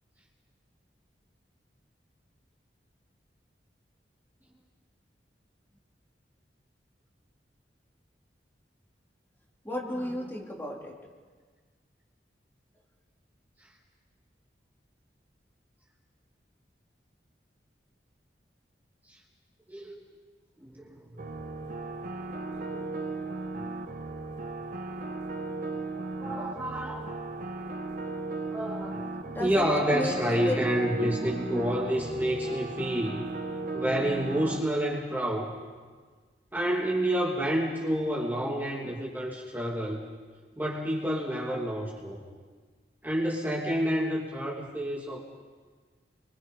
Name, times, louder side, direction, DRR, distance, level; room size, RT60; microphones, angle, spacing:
voice 1, 9.7-10.9 29.3-30.7 31.0-31.7, left 1 dB, 15° left, -2 dB, 3.6 m, -34 dB
voice 2, 19.7-20.1 20.6-21.3 22.6-22.9 26.2-27.2 28.5-33.2 33.7-35.5 36.5-40.0 40.6-42.2 43.0-45.2, equal, 10° right, -4 dB, 2.9 m, -29 dB
sound 1, 21.2-34.6, right 3 dB, 50° right, 1.5 m, -36 dB
29.5 x 24.5 x 5.5 m, 1.5 s
head